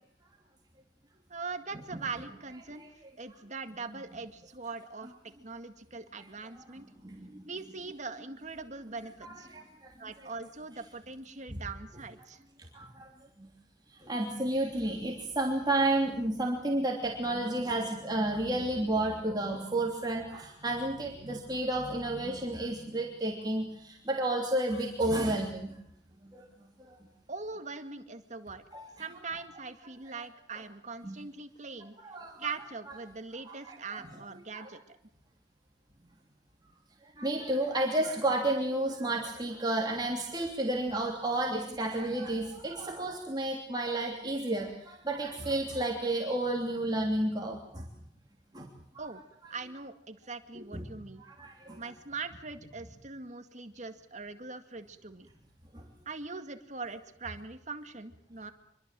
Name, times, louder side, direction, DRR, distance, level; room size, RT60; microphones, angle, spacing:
voice 1, 1.3-2.9 3.2-6.9 7.5-9.5 10.0-12.4 27.3-28.6 29.0-32.0 32.4-35.0 49.0-49.2 49.5-51.2 51.8-55.3 56.1-58.5, right 4 dB, 40° right, 8 dB, 2.0 m, -41 dB
voice 2, 7.0-7.5 9.2-9.9 11.5-11.6 12.7-13.1 13.4-13.5 14.0-25.8 26.2-26.4 26.8-27.0 28.7-28.9 31.0-31.1 32.0-32.5 33.4-34.0 34.5-34.6 37.2-47.9 48.5-48.7 50.5-50.9 51.2-51.8 55.7-55.8, right 1 dB, 20° right, 0 dB, 3.1 m, -31 dB
26.0 x 23.0 x 7.6 m, 0.67 s
head